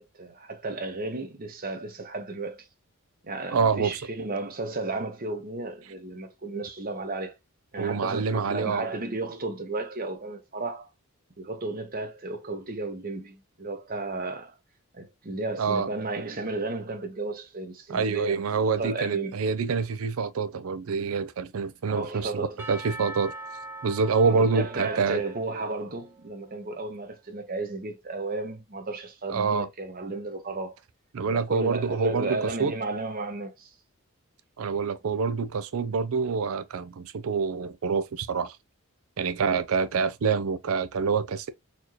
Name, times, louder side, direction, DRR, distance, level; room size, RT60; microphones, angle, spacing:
voice 1, 0.0-2.7 3.2-7.3 7.7-10.9 11.4-14.5 14.9-19.3 21.9-22.6 24.2-30.8 31.3-33.7, right 3 dB, 40° right, 0.8 m, -33 dB
voice 2, 3.5-4.3 7.8-8.9 15.6-15.9 17.9-23.3 23.8-25.2 29.3-29.7 31.1-32.7 34.6-38.6 39.2-41.5, right 5 dB, 70° right, 0.5 m, -26 dB
Percussion / Church bell, 22.6-26.5, right 2 dB, 10° right, 1.0 m, -42 dB
4.3 x 2.8 x 3.0 m
head